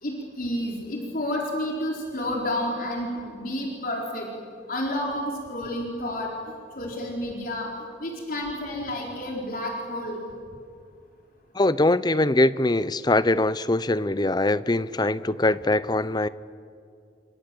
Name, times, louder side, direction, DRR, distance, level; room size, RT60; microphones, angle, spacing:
voice 1, 0.0-4.3 4.7-6.3 6.8-7.7 8.0-10.2, left 1 dB, 50° left, -1 dB, 4.3 m, -30 dB
voice 2, 11.5-16.3, left 2 dB, 25° left, 16 dB, 0.7 m, -22 dB
29.0 x 25.0 x 7.8 m, 2.3 s
head